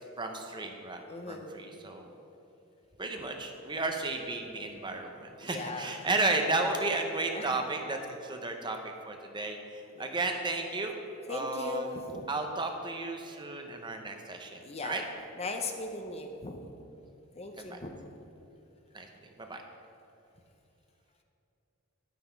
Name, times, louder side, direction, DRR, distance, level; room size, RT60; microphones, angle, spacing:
voice 1, 0.2-2.1 3.0-11.0 11.3-11.9 12.3-15.0 17.7-17.8 18.9-19.1 19.4-19.6, right 3 dB, 20° right, 4 dB, 0.8 m, -33 dB
voice 2, 1.1-1.5 5.4-6.2 7.3-7.6 10.0-10.2 11.3-12.3 14.6-16.6 17.4-17.9, left 3 dB, 30° left, 4 dB, 0.8 m, -39 dB
11.0 x 9.3 x 4.6 m, 2.9 s
head